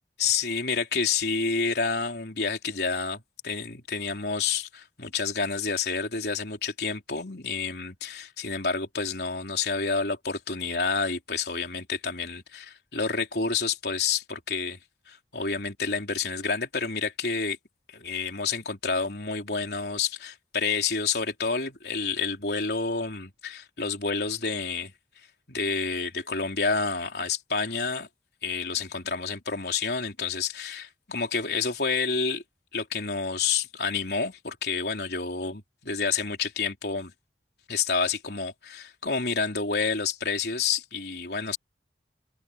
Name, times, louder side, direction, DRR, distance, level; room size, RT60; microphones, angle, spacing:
voice 1, 0.2-14.8 15.1-17.6 17.9-24.9 25.5-28.1 28.4-32.4 32.7-37.1 37.7-41.6, left 5 dB, 70° left, 3.7 m, -29 dB
head